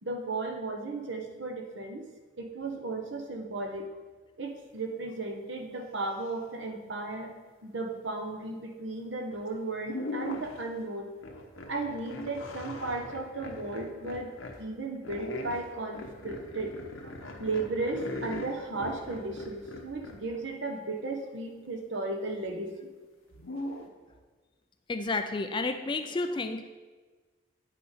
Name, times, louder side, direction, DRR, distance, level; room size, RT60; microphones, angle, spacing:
voice 1, 0.0-2.0 2.4-3.9 4.4-7.3 7.6-11.1 11.7-14.3 14.6-16.7 17.0-22.9, right 2 dB, 65° right, 3 dB, 1.0 m, -35 dB
sound 1, 9.3-9.5 9.8-10.7 11.2-14.6 15.0-20.3 23.3-23.9, left 1 dB, 85° left, 1.0 m, -40 dB
voice 2, 24.9-26.7, left 3 dB, 25° left, 7 dB, 0.3 m, -31 dB
9.0 x 5.6 x 4.2 m, 1.4 s
head